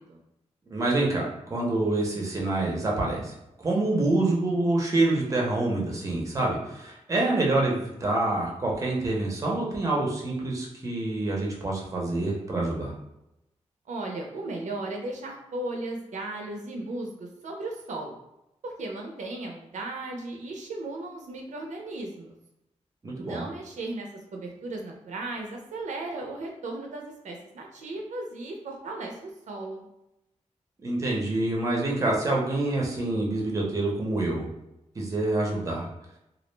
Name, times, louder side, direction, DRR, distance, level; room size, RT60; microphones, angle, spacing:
voice 1, 0.7-12.9 23.0-23.4 30.8-34.5 34.9-35.9, right 2 dB, 25° right, -2 dB, 0.5 m, -26 dB
voice 2, 13.9-18.2 18.6-22.3 23.2-29.9, right 2 dB, 75° right, 1 dB, 0.4 m, -36 dB
2.3 x 2.0 x 3.1 m, 0.89 s
wide cardioid pair, 170°, 12 cm